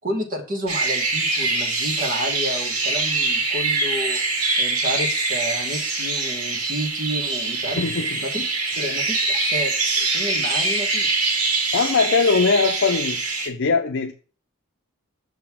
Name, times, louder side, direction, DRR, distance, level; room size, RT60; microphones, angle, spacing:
voice 1, 0.0-4.2 4.6-7.8 8.2-8.4 8.7-9.8 10.1-11.3, equal, 40° right, 3 dB, 1.7 m, -30 dB
sound 1, 0.7-13.5, right 3 dB, 85° right, 1.9 m, -24 dB
voice 2, 7.7-8.2 11.7-13.2 13.5-14.1, left 4 dB, 60° left, 3 dB, 0.7 m, -20 dB
6.7 x 3.7 x 6.1 m, 0.38 s
head